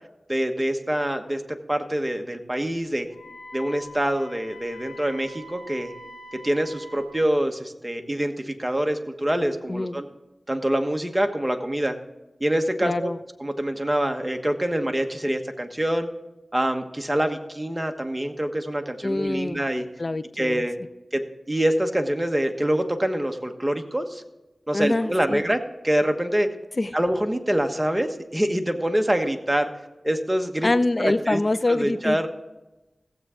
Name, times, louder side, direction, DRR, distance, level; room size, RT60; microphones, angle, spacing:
voice 1, 0.3-3.1 3.5-5.9 6.4-10.1 10.5-12.0 12.4-13.1 13.4-16.1 16.5-19.9 20.4-20.8 21.1-24.2 24.7-25.6 25.8-26.5 26.9-29.7 30.0-30.7 31.0-31.4 31.7-32.3, right 1 dB, 15° right, 5 dB, 1.3 m, -25 dB
Wind instrument woodwind instrument, 3.1-7.2, left 1 dB, 90° left, 1.5 m, -44 dB
voice 2, 12.8-13.2 19.0-19.6 20.0-20.6 24.7-25.4 26.8-26.9 30.6-32.3, left 2 dB, 45° left, 14 dB, 0.5 m, -25 dB
15.5 x 8.1 x 3.7 m, 1.0 s
wide cardioid pair, 50°, 0 cm